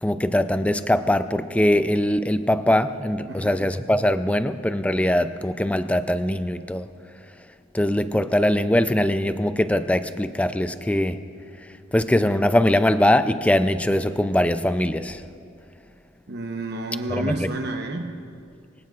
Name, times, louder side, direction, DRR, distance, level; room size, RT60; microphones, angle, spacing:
voice 1, 0.0-6.9 7.7-11.2 11.9-15.2 17.2-17.3, left 1 dB, 5° left, 11 dB, 0.4 m, -21 dB
voice 2, 3.3-3.7 16.3-18.2, right 2 dB, 60° right, 4 dB, 1.0 m, -30 dB
24.5 x 16.5 x 2.5 m, 2.4 s
head